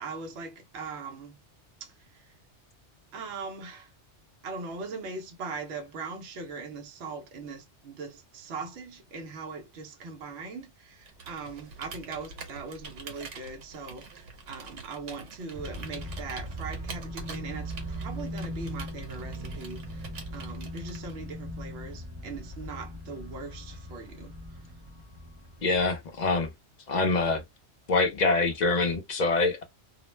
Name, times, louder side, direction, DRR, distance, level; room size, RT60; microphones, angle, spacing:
voice 1, 0.0-1.4 1.8-2.4 3.1-3.9 4.4-20.1 20.3-24.6, right 4 dB, 65° right, 0.8 m, -40 dB
Computer keyboard, 11.0-21.3, right 4 dB, 90° right, 1.1 m, -46 dB
sound 1, 15.5-25.9, equal, 35° right, 0.5 m, -39 dB
voice 2, 25.6-26.5 26.9-27.4 27.9-29.6, left 3 dB, 50° left, 0.6 m, -25 dB
2.4 x 2.0 x 3.0 m
omnidirectional pair, 1.2 m